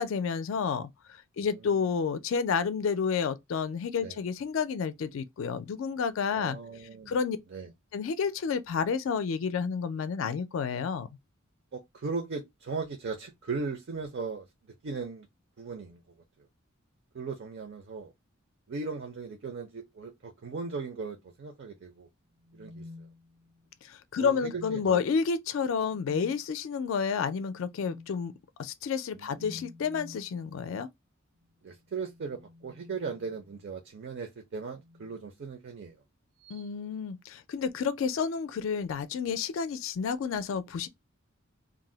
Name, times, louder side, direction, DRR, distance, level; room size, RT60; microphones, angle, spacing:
voice 1, 0.0-6.6 7.1-7.4 7.9-11.1 23.8-28.3 28.6-30.9 36.5-40.9, left 6 dB, 65° left, 0.3 m, -30 dB
voice 2, 1.4-1.9 4.0-4.2 6.3-7.1 7.5-7.7 11.7-14.5 14.8-15.3 15.6-16.5 17.1-18.1 18.7-22.1 22.5-23.1 24.2-25.0 29.1-29.6 31.6-36.0, right 4 dB, 60° right, 0.5 m, -38 dB
sound 1, 22.4-23.7 24.3-25.1 25.9-26.4 27.8-28.2 29.3-30.3 31.8-33.7 34.7-35.2 36.4-36.7, left 2 dB, 5° right, 0.4 m, -50 dB
2.5 x 2.0 x 3.7 m
head